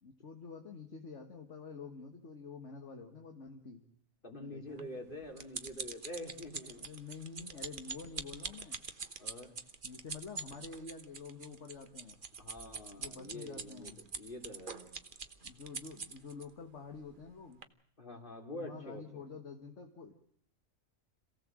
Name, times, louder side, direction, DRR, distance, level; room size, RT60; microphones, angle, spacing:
voice 1, 0.0-3.9 4.4-5.0 6.8-8.8 9.8-12.3 13.0-14.0 15.4-17.7 18.5-20.2, left 5 dB, 60° left, 5 dB, 1.9 m, -48 dB
voice 2, 4.2-6.8 9.2-9.5 12.4-14.9 18.0-19.0, left 1 dB, 40° left, 3 dB, 3.8 m, -46 dB
sound 1, 4.8-16.5 17.1-17.3 17.6-17.7, right 5 dB, 40° right, 1.3 m, -44 dB
27.0 x 17.0 x 7.6 m, 0.65 s
omnidirectional pair, 1.4 m